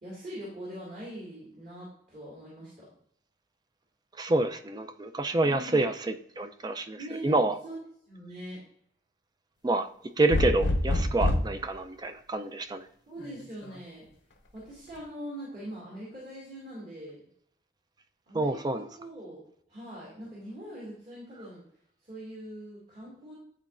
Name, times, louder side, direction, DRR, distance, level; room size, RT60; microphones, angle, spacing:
voice 1, 0.0-2.8 5.4-5.8 7.0-7.7 8.1-8.6 13.1-14.0 14.5-17.2 18.3-19.4 19.7-21.6 22.0-23.4, right 1 dB, 40° right, -7 dB, 2.1 m, -42 dB
voice 2, 4.2-7.0 7.2-7.5 9.6-9.9 10.2-12.9 18.3-18.9, right 2 dB, 20° right, 8 dB, 0.4 m, -27 dB
sound 1, 10.3-11.6 13.2-13.8, left 1 dB, 70° left, 0.7 m, -26 dB
9.7 x 4.0 x 2.5 m, 0.70 s
head